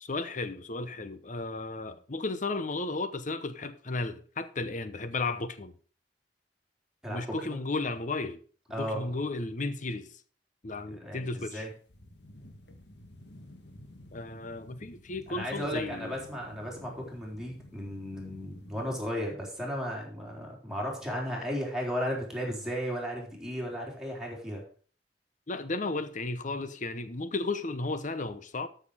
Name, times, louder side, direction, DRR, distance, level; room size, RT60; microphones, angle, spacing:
voice 1, 0.0-5.7 7.1-8.4 8.8-10.2 10.6-11.7 14.1-16.1 25.5-28.7, left 3 dB, 45° left, 0.9 m, -34 dB
voice 2, 8.7-9.1 10.9-11.7 15.3-24.6, equal, 5° right, 3.9 m, -35 dB
sound 1, 11.6-19.1, left 1 dB, 70° left, 1.6 m, -52 dB
12.5 x 6.7 x 4.9 m
head